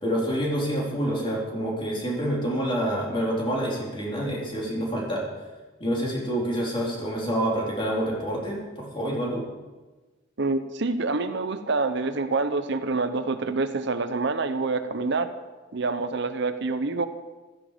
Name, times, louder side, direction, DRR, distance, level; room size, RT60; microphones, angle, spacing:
voice 1, 0.0-5.3 5.8-9.4, equal, 25° left, -3 dB, 3.8 m, -27 dB
voice 2, 10.4-15.3 15.7-17.1, right 3 dB, 60° right, 10 dB, 0.8 m, -26 dB
15.5 x 13.0 x 5.1 m, 1.3 s
head